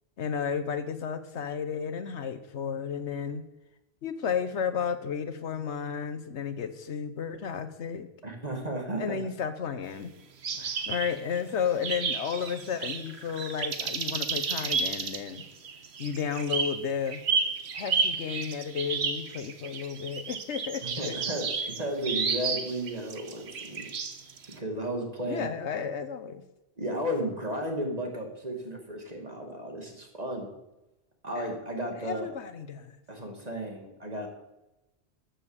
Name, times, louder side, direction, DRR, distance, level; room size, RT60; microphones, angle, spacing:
voice 1, 0.2-3.4 4.0-8.1 9.0-10.1 10.8-15.4 16.0-17.2 17.7-21.2 25.3-26.4 31.4-31.5 32.0-33.0, left 7 dB, 75° left, 11 dB, 1.2 m, -33 dB
voice 2, 8.2-9.2 10.6-10.8 20.8-23.9 24.5-25.4 26.8-30.5 31.2-32.3 33.1-34.3, right 1 dB, 35° right, 2 dB, 2.4 m, -34 dB
sound 1, 10.4-11.4 11.8-24.5, right 5 dB, 65° right, 1.3 m, -32 dB
13.0 x 6.8 x 7.3 m, 0.96 s
omnidirectional pair, 1.2 m